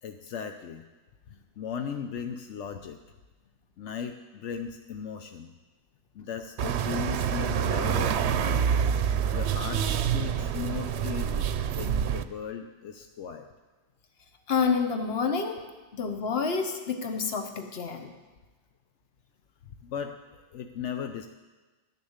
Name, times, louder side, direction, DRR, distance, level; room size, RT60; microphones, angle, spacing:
voice 1, 0.0-0.9 1.3-3.0 3.8-5.5 6.1-8.7 9.3-13.5 19.8-21.3, left 7 dB, 85° left, 6 dB, 1.0 m, -37 dB
sound 1, 6.6-12.2, right 8 dB, 70° right, 0.8 m, -27 dB
voice 2, 14.5-15.6 15.9-18.1, left 5 dB, 60° left, 5 dB, 1.3 m, -28 dB
12.0 x 6.8 x 8.0 m, 1.2 s
omnidirectional pair, 1.2 m